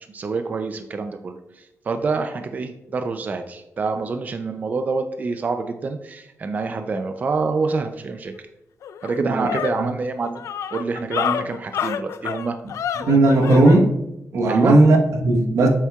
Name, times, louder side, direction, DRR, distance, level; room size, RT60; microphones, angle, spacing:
voice 1, 0.1-8.3 9.0-10.4 10.7-12.6 14.5-14.8, right 4 dB, 35° right, 7 dB, 0.4 m, -26 dB
sound 1, 8.3-8.4 8.8-13.8, left 8 dB, 80° left, 0.3 m, -28 dB
voice 2, 9.2-9.5 9.8-9.9 13.1-13.9 14.3-15.7, right 2 dB, 85° right, 2 dB, 1.1 m, -16 dB
8.0 x 7.3 x 2.3 m, 0.89 s
wide cardioid pair, 175°, 5 cm